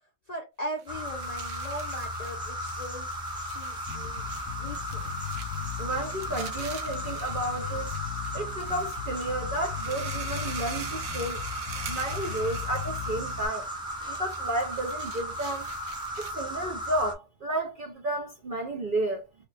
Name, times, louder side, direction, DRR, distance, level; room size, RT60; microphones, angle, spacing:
voice 1, 0.3-3.1 3.3-4.3 4.6-5.1, equal, 40° left, 0.6 m, -39 dB
sound 1, 0.7-16.5, right 6 dB, 70° right, 1.2 m, -45 dB
sound 2, 0.9-17.1, equal, 5° right, 0.3 m, -36 dB
Bass guitar, 3.9-13.5, left 9 dB, 70° left, 0.9 m, -38 dB
voice 2, 5.6-7.9 8.3-11.4 11.9-13.7 14.1-15.7 16.2-19.2, right 1 dB, 50° right, 0.7 m, -32 dB
3.3 x 2.3 x 3.3 m
omnidirectional pair, 1.5 m